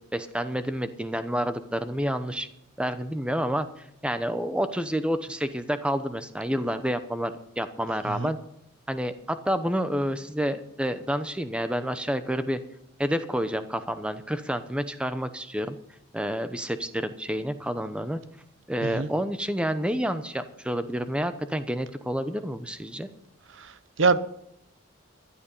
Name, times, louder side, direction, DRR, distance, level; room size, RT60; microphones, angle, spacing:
voice 1, 0.1-2.5 2.8-8.4 8.9-12.6 13.0-15.8 16.1-18.2 18.7-23.1, equal, 5° right, 0.8 m, -29 dB
voice 2, 23.6-24.2, right 4 dB, 65° right, 0.8 m, -25 dB
15.0 x 11.5 x 5.5 m
head